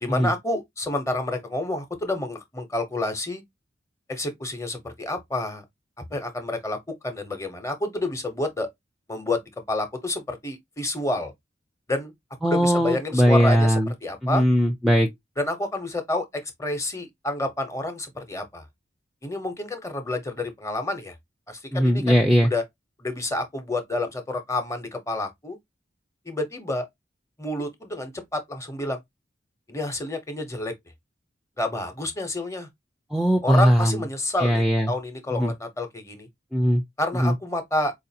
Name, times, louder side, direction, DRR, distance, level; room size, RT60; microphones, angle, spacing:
voice 1, 0.0-3.4 4.1-5.6 6.1-6.8 7.0-8.7 9.1-9.4 9.7-11.3 11.9-12.1 12.4-14.4 15.4-18.6 19.2-21.1 21.5-22.6 23.0-25.6 26.3-26.9 27.4-29.0 29.7-30.7 31.6-32.7 33.4-36.3 37.0-37.9, left 2 dB, 15° left, 0.7 m, -29 dB
voice 2, 12.4-13.9 14.2-15.1 21.7-22.5 33.1-34.0 34.4-34.9 35.3-35.5 36.5-36.8 37.1-37.3, equal, ahead, 0.3 m, -20 dB
4.5 x 2.4 x 2.7 m
head